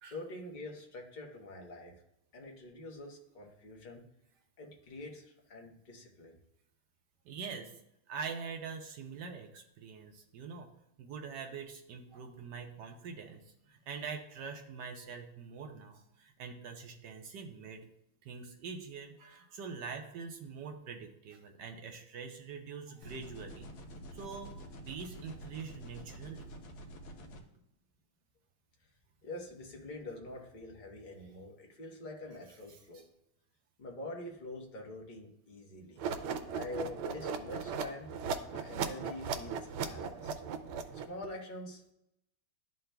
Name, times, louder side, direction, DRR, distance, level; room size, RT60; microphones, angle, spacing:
voice 1, 0.1-2.0 2.3-4.0 4.6-6.3 29.2-33.0 33.8-36.1 36.5-38.1 38.5-40.3 40.9-41.9, left 2 dB, 35° left, 0 dB, 0.8 m, -45 dB
voice 2, 7.2-7.7 8.1-10.7 11.0-17.8 18.2-23.7 24.1-24.5 24.9-26.5 32.7-33.0, right 5 dB, 65° right, 4 dB, 1.1 m, -44 dB
sound 1, 23.0-27.4, equal, 75° left, 1.5 m, -48 dB
sound 2, 36.0-41.2, right 6 dB, 90° right, 1.5 m, -37 dB
11.5 x 3.9 x 2.2 m, 0.80 s
omnidirectional pair, 2.3 m